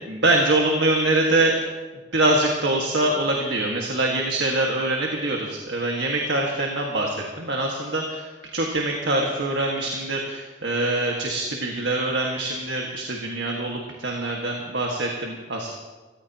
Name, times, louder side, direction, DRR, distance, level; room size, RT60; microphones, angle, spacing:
voice 1, 0.1-1.5 2.1-8.3 8.5-15.7, right 2 dB, 75° right, 0 dB, 1.8 m, -24 dB
25.0 x 15.0 x 3.0 m, 1.3 s
head